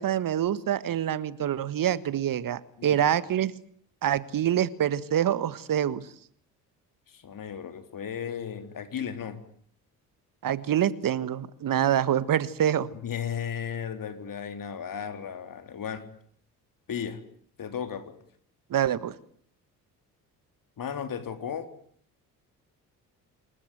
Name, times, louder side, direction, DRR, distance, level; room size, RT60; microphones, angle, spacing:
voice 1, 0.0-3.5 4.0-6.0 10.4-12.9 18.7-19.1, right 10 dB, 45° right, 16 dB, 1.6 m, -26 dB
voice 2, 7.1-9.4 13.0-16.1 16.9-17.2 17.6-18.1 20.8-21.7, left 8 dB, 45° left, 10 dB, 3.9 m, -35 dB
27.0 x 22.0 x 9.3 m, 0.62 s
figure-of-eight pair, 50°, 46 cm